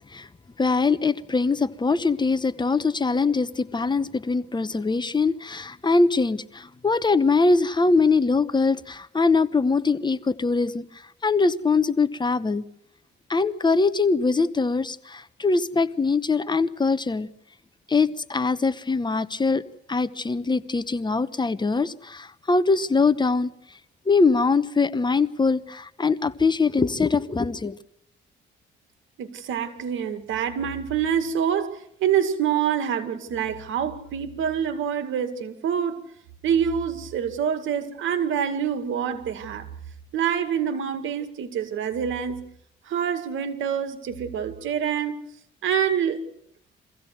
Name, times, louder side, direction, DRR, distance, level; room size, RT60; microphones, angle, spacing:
voice 1, 0.6-10.8 11.2-12.6 13.3-17.3 17.9-19.6 19.9-23.5 24.1-27.7, left 4 dB, 20° left, 1.0 m, -22 dB
voice 2, 29.2-36.0 36.4-39.7 40.1-42.5 42.9-45.2 45.6-46.3, right 8 dB, 80° right, 2.2 m, -26 dB
23.5 x 16.0 x 7.9 m
cardioid pair, 90°, 20 cm